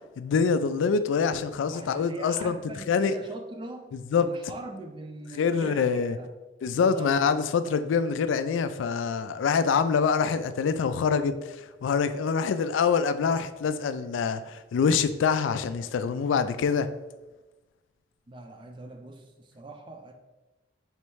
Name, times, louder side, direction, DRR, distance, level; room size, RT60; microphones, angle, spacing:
voice 1, 0.2-2.6 2.9-3.1 4.1-4.3 5.4-6.2 6.6-16.9, left 6 dB, 85° left, 12 dB, 0.3 m, -25 dB
voice 2, 1.7-3.9 4.2-6.3 6.7-7.5 18.3-20.1, right 2 dB, 25° right, 4 dB, 0.4 m, -42 dB
3.3 x 3.1 x 4.6 m, 1.1 s
head